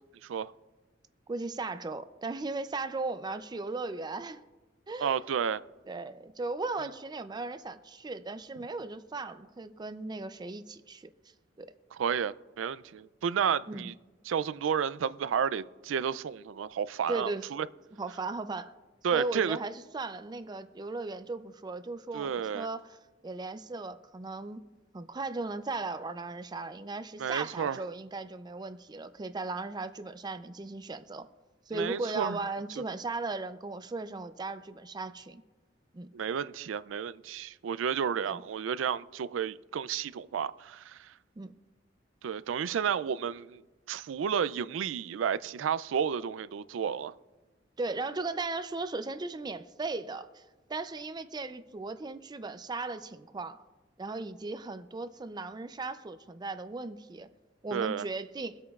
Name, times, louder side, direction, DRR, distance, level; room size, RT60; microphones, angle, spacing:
voice 1, 0.2-0.5 5.0-5.6 11.9-13.9 14.2-17.7 19.0-19.6 22.1-22.7 27.2-27.8 31.7-32.4 36.1-41.1 42.2-43.6 43.9-47.1 57.7-58.1, right 7 dB, 85° right, 0.4 m, -31 dB
voice 2, 1.3-4.4 4.9-5.2 5.9-11.1 11.6-11.7 13.7-13.9 17.1-17.5 18.0-18.7 19.1-22.8 23.2-24.6 24.9-31.3 31.7-35.4 35.9-36.1 38.2-38.4 41.4-41.5 47.8-50.4 50.7-53.6 54.0-57.3 57.6-58.6, right 3 dB, 20° right, 0.4 m, -37 dB
23.5 x 8.3 x 2.4 m
head